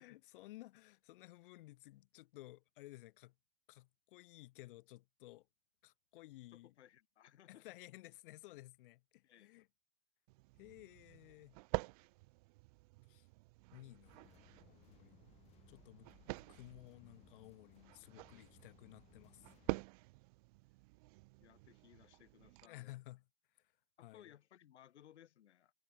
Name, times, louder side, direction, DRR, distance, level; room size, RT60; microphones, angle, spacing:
voice 1, 0.0-3.3 3.7-5.5 5.8-6.7 7.5-9.7 10.6-11.6 13.1-13.3 13.7-15.2 15.7-16.1 16.5-19.5 22.6-23.2 24.0-24.3, left 18 dB, 50° left, 4.8 m, -56 dB
voice 2, 6.5-7.7 9.2-9.5 21.4-23.0 24.0-25.7, left 11 dB, 85° left, 7.8 m, -62 dB
sound 1, 10.3-22.7, right 25 dB, 35° right, 0.8 m, -48 dB
sound 2, 14.0-19.8, left 13 dB, 20° left, 1.2 m, -66 dB
supercardioid pair, 165°, 33 cm